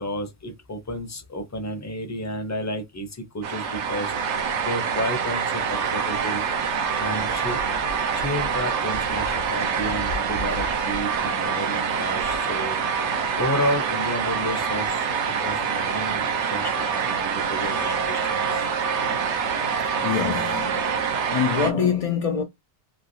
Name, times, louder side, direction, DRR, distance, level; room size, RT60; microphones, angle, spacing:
voice 1, 0.0-6.4 7.0-7.6 8.1-12.8 13.3-18.7, equal, 20° left, 0.5 m, -31 dB
sound 1, 3.4-21.7, right 6 dB, 90° right, 1.0 m, -26 dB
sound 2, 5.7-6.2 6.8-8.2 8.5-9.0 11.1-11.6 12.2-13.8 14.3-14.7 16.7-17.2 17.7-19.2 19.7-20.2, right 3 dB, 60° right, 0.3 m, -35 dB
voice 2, 20.0-22.4, left 7 dB, 70° left, 0.3 m, -25 dB
3.2 x 2.8 x 2.7 m
omnidirectional pair, 1.2 m